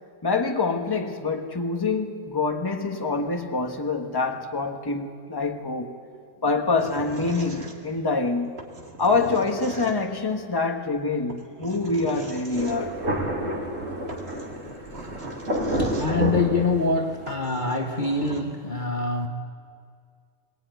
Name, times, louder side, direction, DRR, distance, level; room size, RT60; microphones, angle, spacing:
voice 1, 0.2-5.9 6.4-8.5 9.0-13.0, left 3 dB, 20° left, 1.4 m, -26 dB
sound 1, 6.8-8.1 8.6-10.2 11.3-12.8 13.7-13.8 14.1-16.4 16.9-17.0 17.3-18.4, right 2 dB, 55° right, 2.4 m, -41 dB
Thunder, 12.5-17.3, right 1 dB, 85° right, 2.9 m, -29 dB
voice 2, 15.5-19.3, left 3 dB, 40° left, 1.3 m, -25 dB
23.5 x 19.0 x 9.3 m
omnidirectional pair, 1.3 m